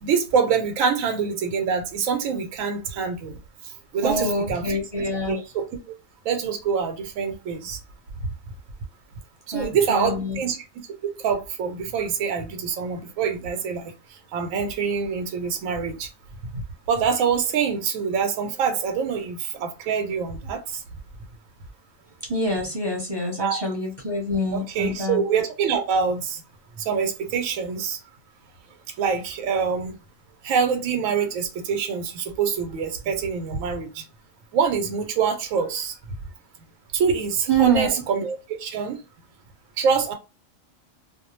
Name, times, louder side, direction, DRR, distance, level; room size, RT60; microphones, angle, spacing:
voice 1, 0.0-3.4 3.9-4.8 5.3-5.7 6.2-7.8 9.5-10.6 11.0-13.9 14.3-16.1 16.9-20.8 23.4-23.7 24.5-26.4 26.9-28.0 29.0-30.0 30.4-34.0 34.5-35.9 36.9-39.0 39.8-40.1, right 6 dB, 85° right, 1.0 m, -25 dB
voice 2, 4.0-5.4 9.5-10.4 22.3-25.2 37.5-37.9, right 1 dB, 25° right, 0.8 m, -25 dB
2.3 x 2.1 x 2.9 m
omnidirectional pair, 1.4 m